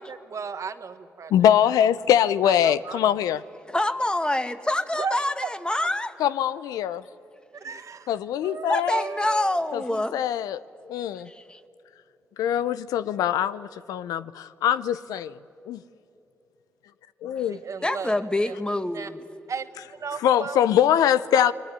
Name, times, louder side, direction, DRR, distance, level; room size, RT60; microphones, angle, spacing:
voice 1, 0.0-1.3 1.6-1.8 2.4-3.1 4.9-5.5 7.5-8.2 8.4-9.8 17.5-18.5 18.9-19.1 19.5-20.6 20.9-21.5, right 6 dB, 60° right, 10 dB, 1.5 m, -35 dB
voice 2, 1.3-3.4 6.2-7.0 8.1-9.0 9.7-9.8 10.1-10.6 10.9-11.3 12.4-15.4 15.7-15.8 17.2-17.6 20.2-21.5, left 10 dB, 85° left, 16 dB, 0.6 m, -23 dB
voice 3, 3.7-6.1 8.7-10.2 11.3-11.6 17.8-19.2, left 1 dB, 15° left, 9 dB, 1.7 m, -26 dB
28.0 x 21.5 x 9.9 m, 2.8 s
supercardioid pair, 45°, 6 cm